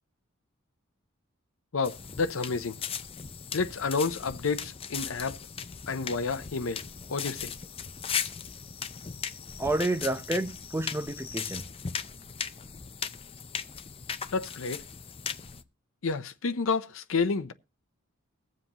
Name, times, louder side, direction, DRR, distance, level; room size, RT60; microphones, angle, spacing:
voice 1, 1.7-2.7 3.5-5.4 5.9-6.8 7.1-7.5 14.3-14.8 16.0-17.5, left 4 dB, 70° left, 0.6 m, -30 dB
sound 1, 1.8-15.6, left 7 dB, 25° left, 0.6 m, -38 dB
voice 2, 9.6-11.6, right 2 dB, 10° right, 0.6 m, -29 dB
22.0 x 7.6 x 3.0 m
head